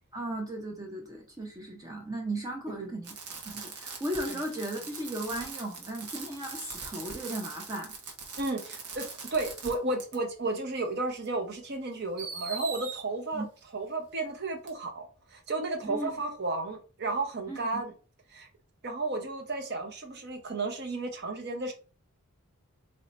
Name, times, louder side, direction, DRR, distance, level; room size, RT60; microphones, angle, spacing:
voice 1, 0.1-3.2 3.4-7.9 13.3-13.5 15.8-16.1 17.5-17.6, right 1 dB, 15° right, 0.5 m, -36 dB
Fireworks, 3.0-9.7 10.0-10.2 11.2-11.3 12.2-13.0 14.7-14.8, right 5 dB, 85° right, 1.0 m, -41 dB
voice 2, 8.4-13.4 13.7-17.9 18.3-18.5 18.8-21.7, right 2 dB, 50° right, 0.8 m, -33 dB
3.1 x 2.6 x 4.2 m
head